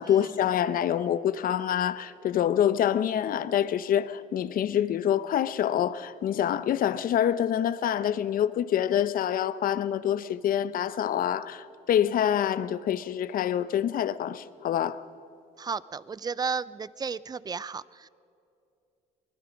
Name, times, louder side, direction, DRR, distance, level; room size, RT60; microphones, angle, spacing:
voice 1, 0.0-15.1, left 10 dB, 55° left, 0.9 m, -26 dB
voice 2, 15.6-18.1, right 5 dB, 25° right, 0.5 m, -33 dB
24.5 x 20.0 x 5.3 m
cardioid pair, 110°, 17 cm